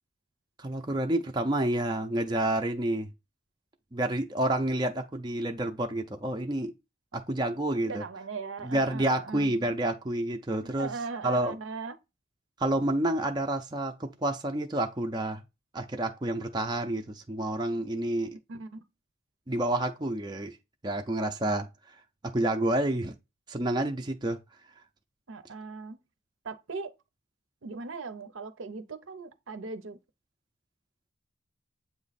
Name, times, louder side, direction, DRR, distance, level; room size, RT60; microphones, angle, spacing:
voice 1, 0.6-3.1 3.9-6.7 7.1-8.0 8.6-10.9 11.2-11.6 12.6-15.4 15.7-18.4 19.5-20.6 20.8-21.7 22.3-23.1 23.5-24.4, right 1 dB, 20° right, 0.5 m, -29 dB
voice 2, 7.8-9.7 10.6-11.9 18.5-18.8 25.3-26.0 26.4-26.9 27.6-30.0, right 4 dB, 65° right, 0.6 m, -38 dB
7.8 x 3.0 x 4.1 m
head